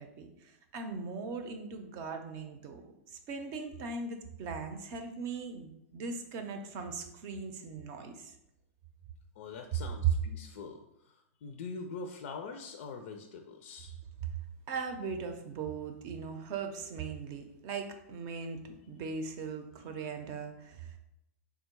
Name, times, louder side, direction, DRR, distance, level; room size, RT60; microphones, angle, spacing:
voice 1, 0.0-2.8 3.1-8.3 14.7-21.0, right 4 dB, 45° right, 6 dB, 0.6 m, -40 dB
voice 2, 9.4-14.0, left 4 dB, 70° left, 5 dB, 0.4 m, -44 dB
3.7 x 2.2 x 4.4 m, 0.87 s
hypercardioid pair, 130°, 8 cm